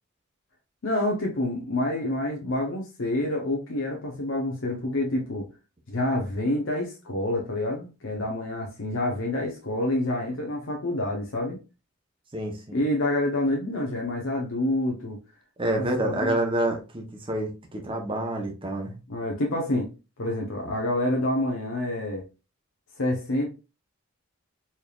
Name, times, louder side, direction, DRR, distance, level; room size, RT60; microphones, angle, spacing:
voice 1, 0.8-5.5 5.9-11.6 12.7-15.2 15.8-16.4 19.1-19.9 20.2-22.2 23.0-23.5, left 1 dB, 65° left, 0.8 m, -27 dB
voice 2, 12.3-12.8 15.6-18.9, right 1 dB, 25° right, 0.8 m, -28 dB
4.2 x 3.3 x 2.3 m
head